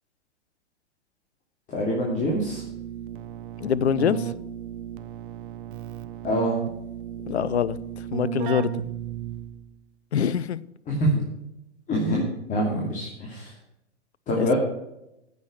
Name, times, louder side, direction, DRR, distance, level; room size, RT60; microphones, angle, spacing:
voice 1, 1.7-2.6 6.2-6.6 10.9-11.1 11.9-13.5 14.3-14.5, equal, 20° left, 2.6 m, -25 dB
Keyboard (musical), 2.2-9.8, right 11 dB, 45° right, 0.9 m, -34 dB
voice 2, 3.6-4.3 7.3-7.8 8.1-8.7 10.1-10.6 14.4-14.5, left 8 dB, 65° left, 0.8 m, -24 dB
15.0 x 6.6 x 6.3 m
figure-of-eight pair, 110°, 35 cm